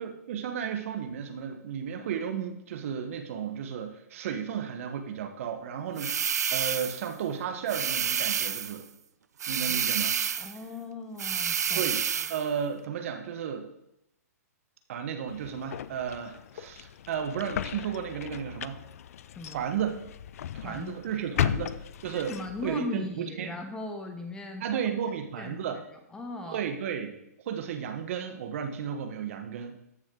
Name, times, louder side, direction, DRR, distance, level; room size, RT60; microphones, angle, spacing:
voice 1, 0.0-8.8 9.5-10.2 11.7-12.0 12.3-13.7 14.9-18.8 19.5-20.0 20.5-21.8 22.0-22.3 22.6-23.5 24.6-25.8 26.5-27.2 27.4-29.8, right 8 dB, 55° right, 7 dB, 1.2 m, -33 dB
sound 1, 6.0-7.1 7.7-8.8 9.4-10.6 11.2-12.4, right 7 dB, 80° right, 0.5 m, -29 dB
voice 2, 10.4-12.3 19.4-19.6 20.6-21.0 22.3-24.8 25.4-25.7 26.1-26.6, left 2 dB, 10° left, 6 dB, 1.0 m, -39 dB
Someone getting into their car, 15.3-22.8, left 10 dB, 60° left, 0.4 m, -36 dB
13.5 x 6.4 x 3.9 m, 0.82 s
hypercardioid pair, 135°, 9 cm